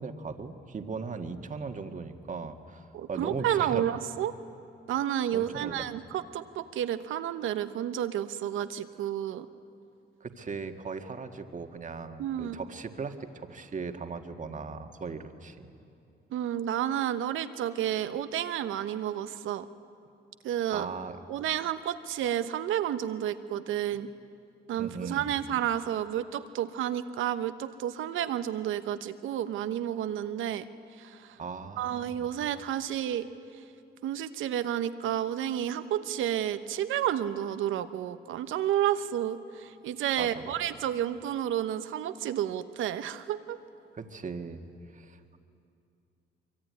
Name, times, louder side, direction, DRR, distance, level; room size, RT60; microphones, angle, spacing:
voice 1, 0.0-3.8 5.3-5.8 10.2-15.7 20.7-21.2 24.8-25.3 31.4-32.3 40.2-40.4 43.9-44.6 44.9-45.4, right 5 dB, 40° right, 6 dB, 1.7 m, -38 dB
voice 2, 2.9-4.3 4.9-9.5 12.2-12.6 16.3-19.7 20.4-20.9 21.3-24.1 24.7-30.7 31.0-31.4 31.8-33.3 34.0-43.6, right 11 dB, 80° right, 11 dB, 1.0 m, -31 dB
24.0 x 23.0 x 9.6 m, 2.6 s
cardioid pair, 90°, 20 cm